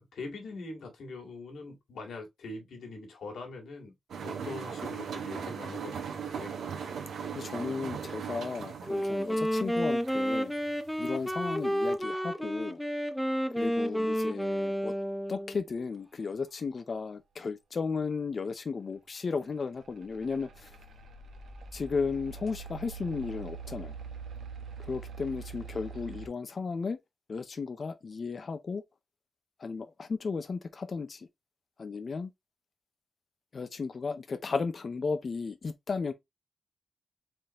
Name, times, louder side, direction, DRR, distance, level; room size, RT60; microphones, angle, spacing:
voice 1, 0.0-3.9 4.2-6.6, left 3 dB, 80° left, 2.0 m, -42 dB
sound 1, 4.1-10.9 11.2-11.9, right 7 dB, 90° right, 1.3 m, -39 dB
voice 2, 7.3-10.5 11.0-12.8 13.6-14.9 15.3-20.8 21.7-24.0 24.8-27.0 27.3-28.8 29.6-31.3 31.8-32.3 33.5-36.1, left 4 dB, 40° left, 0.6 m, -34 dB
Wind instrument woodwind instrument, 8.8-15.6, equal, ahead, 0.6 m, -31 dB
sound 2, 19.9-26.3, right 5 dB, 75° right, 1.0 m, -43 dB
4.4 x 3.8 x 2.9 m
wide cardioid pair, 160°, 0 cm